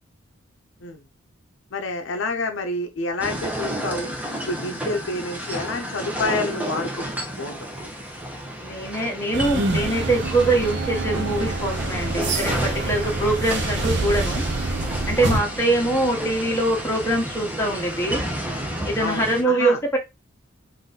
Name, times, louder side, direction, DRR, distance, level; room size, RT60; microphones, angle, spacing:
voice 1, 1.7-4.1 4.5-7.0 7.4-7.7 15.2-15.4 19.0-19.8, left 3 dB, 65° left, 0.6 m, -28 dB
sound 1, 3.2-19.4, right 1 dB, 5° right, 0.8 m, -32 dB
voice 2, 8.6-14.4 15.1-18.2 18.9-20.0, right 2 dB, 15° left, 1.1 m, -23 dB
sound 2, 9.3-15.4, right 2 dB, 60° right, 0.7 m, -27 dB
sound 3, 13.8-18.9, right 4 dB, 40° right, 0.3 m, -35 dB
3.9 x 2.6 x 3.9 m
head